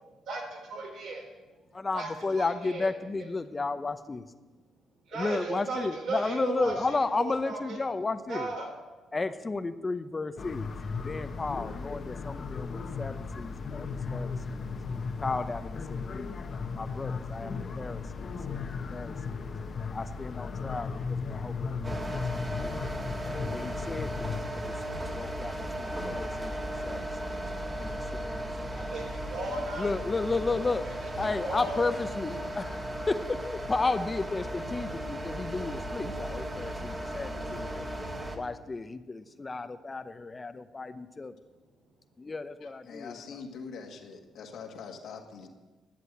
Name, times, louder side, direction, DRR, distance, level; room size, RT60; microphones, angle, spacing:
voice 1, 0.3-1.3 1.9-2.9 5.1-7.8 8.3-8.7 28.7-29.9 31.0-31.1 31.4-31.8, right 3 dB, 75° right, 0 dB, 4.2 m, -36 dB
voice 2, 1.7-4.2 5.1-8.5 9.1-10.7 11.0-14.6 15.2-16.3 16.7-18.6 18.9-19.1 19.9-20.9 21.3-21.5 21.8-22.8 23.5-24.4 24.9-26.5 26.8-27.0 27.8-28.4 28.7-28.9 29.8-37.9 38.3-41.3 42.2-43.4, left 3 dB, 25° left, 10 dB, 0.7 m, -33 dB
sound 1, 10.4-24.4, left 4 dB, 50° left, 1.0 m, -36 dB
sound 2, 21.8-38.4, right 1 dB, 20° right, 1.7 m, -36 dB
voice 3, 42.9-45.5, left 5 dB, 70° left, 3 dB, 1.8 m, -43 dB
11.5 x 7.7 x 8.2 m, 1.2 s
cardioid pair, 90°, 0 cm